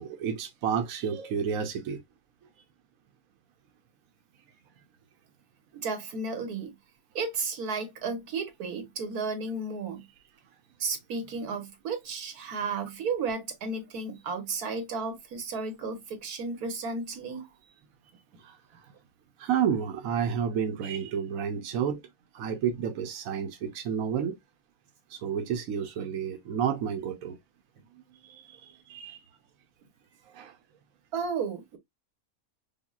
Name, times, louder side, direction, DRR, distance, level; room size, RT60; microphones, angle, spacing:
voice 1, 0.0-2.0 18.4-18.9 19.4-22.0 22.3-24.3 25.1-27.4 28.1-29.2 30.3-30.6, right 7 dB, 70° right, 1.1 m, -31 dB
voice 2, 5.7-6.7 7.1-10.1 10.8-17.5 31.1-31.8, right 4 dB, 85° right, 1.6 m, -33 dB
5.3 x 2.3 x 2.3 m
omnidirectional pair, 1.6 m